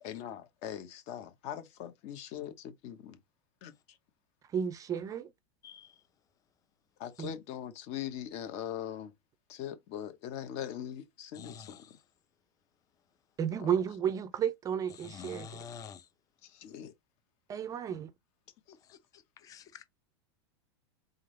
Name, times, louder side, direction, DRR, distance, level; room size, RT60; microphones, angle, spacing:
voice 1, 0.0-3.2 3.6-4.0 7.0-9.1 9.5-11.8 13.6-13.7 16.4-16.9 18.7-18.8, left 10 dB, 50° left, 1.1 m, -41 dB
voice 2, 4.5-5.3 7.2-7.3 13.4-15.7 17.5-18.1, right 8 dB, 25° right, 0.4 m, -32 dB
voice 3, 5.6-6.0 11.3-11.9 15.0-16.1 18.9-19.8, left 7 dB, 25° left, 0.7 m, -48 dB
3.8 x 3.8 x 3.2 m
supercardioid pair, 135°, 14 cm